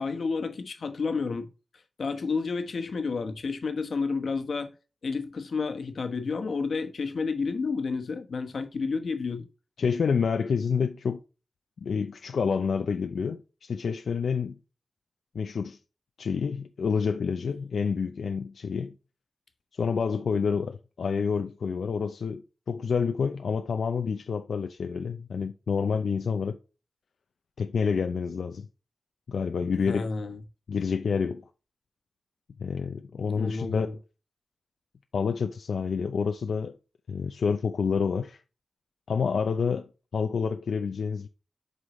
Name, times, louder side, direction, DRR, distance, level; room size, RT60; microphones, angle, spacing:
voice 1, 0.0-1.5 2.0-4.7 5.0-9.5 29.8-30.4 33.4-33.9, left 4 dB, 65° left, 1.1 m, -30 dB
voice 2, 9.8-11.2 11.8-14.6 15.3-15.8 16.2-18.9 19.7-26.6 27.6-28.7 29.3-30.1 30.7-31.5 32.6-33.9 35.1-36.8 37.1-38.4 39.1-41.3, left 6 dB, 90° left, 0.5 m, -28 dB
8.1 x 5.5 x 3.1 m
wide cardioid pair, 145°, 0 cm